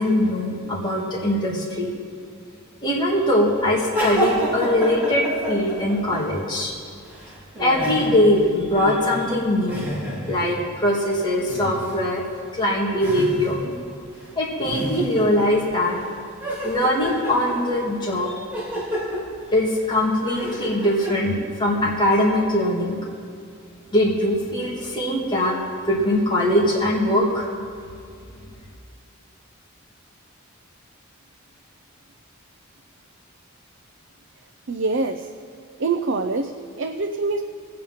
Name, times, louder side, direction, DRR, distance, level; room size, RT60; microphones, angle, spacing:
voice 1, 0.0-1.9 2.8-6.7 7.6-9.9 10.3-12.2 12.5-13.6 14.4-16.0 16.6-18.4 19.5-23.0 23.9-25.6 25.9-27.5, left 1 dB, 20° left, -4 dB, 1.9 m, -21 dB
sound 1, 3.9-6.6 6.9-10.7 11.5-11.9 12.3-12.4 13.0-13.8 14.1-14.3 14.6-16.1 16.4-21.2, equal, 10° right, 3.8 m, -29 dB
voice 2, 34.7-35.3 35.8-37.4, right 3 dB, 55° right, 6 dB, 0.6 m, -25 dB
20.0 x 8.7 x 5.7 m, 2.3 s
head